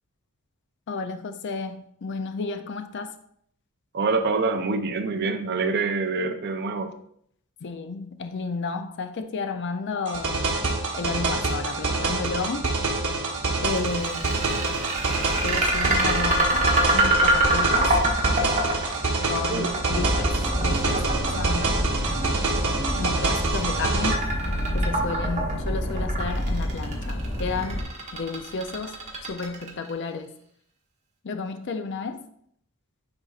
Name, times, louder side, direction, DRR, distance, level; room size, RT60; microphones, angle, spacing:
voice 1, 0.9-3.1 7.6-12.7 13.6-14.4 15.2-17.9 19.3-21.0 21.4-22.2 23.0-24.2 24.7-29.0 29.3-30.3 31.2-32.2, left 4 dB, 55° left, 8 dB, 0.5 m, -32 dB
voice 2, 3.9-6.9 14.4-14.6 19.3-19.8, right 4 dB, 50° right, 7 dB, 0.6 m, -26 dB
sound 1, 10.1-24.1, right 3 dB, 80° right, 1.3 m, -27 dB
sound 2, 13.8-29.9, right 1 dB, 35° right, 1.2 m, -25 dB
sound 3, 19.9-27.8, equal, 85° left, 1.9 m, -28 dB
9.6 x 4.1 x 2.4 m, 0.67 s
head